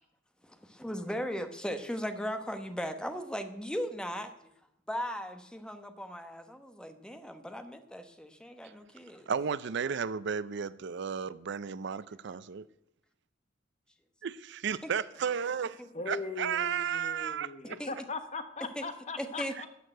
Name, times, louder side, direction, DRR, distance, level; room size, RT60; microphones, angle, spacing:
voice 1, 0.4-4.3 4.9-9.3 14.8-14.9 17.8-17.9 18.8-18.9 19.2-19.7, equal, 5° left, 1.0 m, -37 dB
voice 2, 9.3-12.7 14.2-17.8 19.6-19.7, right 7 dB, 60° right, 0.5 m, -34 dB
voice 3, 15.9-19.7, left 3 dB, 35° left, 1.2 m, -39 dB
12.5 x 6.6 x 9.0 m
head